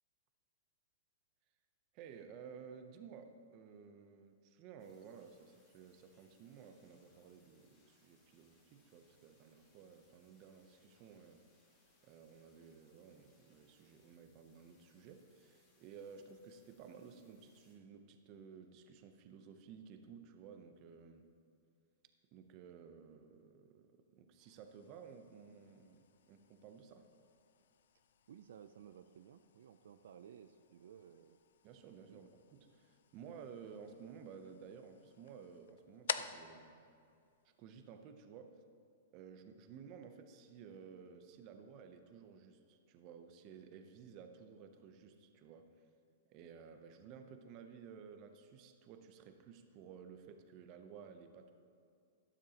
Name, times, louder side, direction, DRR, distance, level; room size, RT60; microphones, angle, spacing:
voice 1, 1.9-11.4 12.0-21.3 22.3-27.1 31.6-36.9 37.4-38.6 39.1-45.8 46.3-51.5, right 6 dB, 30° right, 7 dB, 0.6 m, -55 dB
sound 1, 4.8-17.7, left 2 dB, 25° left, 2.1 m, -74 dB
sound 2, 24.4-38.0, left 8 dB, 70° left, 0.4 m, -51 dB
voice 2, 28.3-31.4 32.1-32.3, right 8 dB, 70° right, 10 dB, 0.4 m, -57 dB
12.5 x 12.0 x 2.9 m, 2.4 s
supercardioid pair, 175°, 0 cm